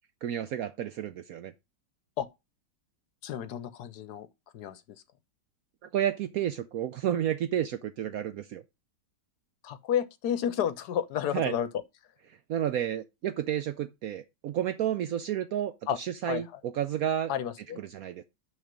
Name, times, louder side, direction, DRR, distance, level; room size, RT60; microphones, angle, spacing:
voice 1, 0.2-1.5 5.9-8.6 11.3-11.5 12.5-15.7 16.0-16.5 16.7-17.3 17.8-18.2, right 10 dB, 70° right, 0.8 m, -31 dB
voice 2, 3.2-4.3 4.5-4.8 9.6-11.7 15.9-16.0 16.2-16.6 17.3-17.8, left 9 dB, 70° left, 1.1 m, -31 dB
6.4 x 5.8 x 5.1 m
omnidirectional pair, 2.0 m